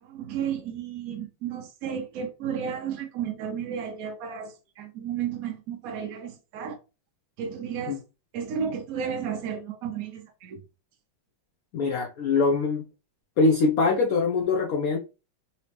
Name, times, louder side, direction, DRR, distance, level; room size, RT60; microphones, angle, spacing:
voice 1, 0.0-6.8 7.4-8.0 8.3-10.6, right 7 dB, 85° right, 0.7 m, -33 dB
voice 2, 11.7-12.8 13.4-15.0, left 4 dB, 85° left, 0.7 m, -23 dB
4.1 x 2.8 x 3.3 m
omnidirectional pair, 2.3 m